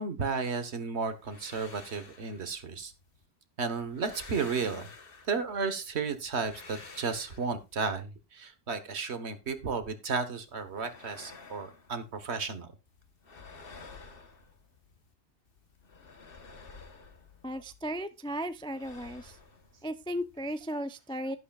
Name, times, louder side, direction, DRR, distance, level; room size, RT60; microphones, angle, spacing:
voice 1, 0.0-2.9 3.6-4.9 5.3-12.7, right 4 dB, 70° right, 1.5 m, -33 dB
sound 1, 1.1-3.3 3.7-5.7 6.1-8.0 10.4-12.6 12.9-15.1 15.5-18.0 18.3-20.7, left 4 dB, 55° left, 1.5 m, -52 dB
voice 2, 17.4-19.4 19.8-21.4, equal, 10° left, 0.3 m, -35 dB
11.5 x 11.0 x 2.4 m
omnidirectional pair, 1.2 m